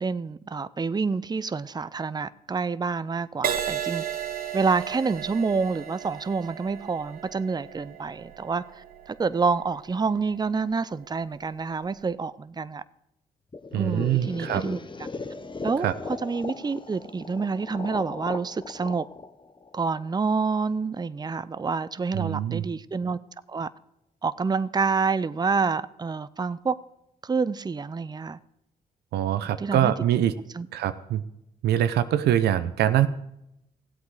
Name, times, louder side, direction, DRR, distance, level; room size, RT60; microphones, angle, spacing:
voice 1, 0.0-4.0 4.5-12.8 13.7-14.8 15.6-19.1 19.7-23.2 23.5-23.7 24.2-26.8 27.2-28.4 29.4-29.9 30.5-30.7, right 4 dB, 25° right, 0.6 m, -28 dB
Crash cymbal, 3.4-11.1 11.7-12.0, right 9 dB, 60° right, 1.2 m, -35 dB
sound 1, 13.5-20.4, left 3 dB, 30° left, 1.1 m, -38 dB
voice 2, 13.7-14.6 15.8-15.9 22.1-22.6 29.1-30.3 30.7-31.2 31.6-33.1, right 11 dB, 85° right, 0.7 m, -24 dB
15.5 x 8.3 x 4.8 m
supercardioid pair, 55°, 17 cm